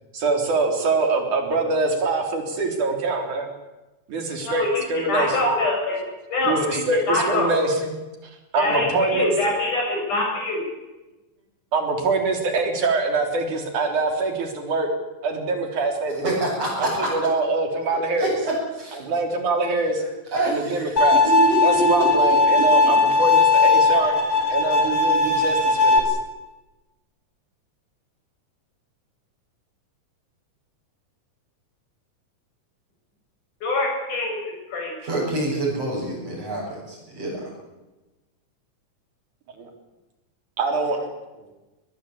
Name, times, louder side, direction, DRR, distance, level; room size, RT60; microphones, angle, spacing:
voice 1, 0.1-3.5 4.1-5.4 6.4-7.9 8.5-9.3 11.7-14.9 15.2-16.4 16.8-18.4 19.0-20.0 20.5-21.2 21.6-24.1 24.5-26.2 39.6-39.7 40.6-41.0, right 3 dB, 75° right, 4 dB, 5.1 m, -24 dB
voice 2, 4.5-6.0 6.3-7.5 8.6-10.6 33.6-34.9, left 2 dB, 80° left, 0 dB, 9.2 m, -24 dB
voice 3, 16.2-17.1 18.2-18.5 18.8-19.0 20.3-20.9 21.2-21.8 22.5-22.6 35.0-37.4, right 2 dB, 55° right, -7 dB, 8.4 m, -26 dB
Bowed string instrument, 21.0-26.0, left 3 dB, 50° left, 4.5 m, -18 dB
23.5 x 20.0 x 8.6 m, 1.1 s
omnidirectional pair, 3.5 m